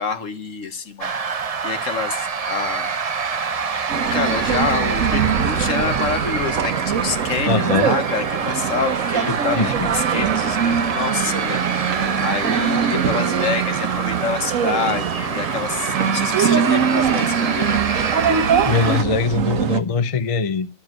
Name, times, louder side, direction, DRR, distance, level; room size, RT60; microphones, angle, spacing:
voice 1, 0.0-3.3 3.9-18.0, left 5 dB, 60° left, 1.7 m, -27 dB
sound 1, 1.0-19.0, right 5 dB, 40° right, 0.6 m, -26 dB
sound 2, 3.9-19.8, right 7 dB, 65° right, 1.4 m, -23 dB
voice 2, 7.5-7.9 9.5-9.9 18.6-20.7, left 4 dB, 35° left, 0.6 m, -21 dB
11.5 x 7.3 x 9.1 m
omnidirectional pair, 1.5 m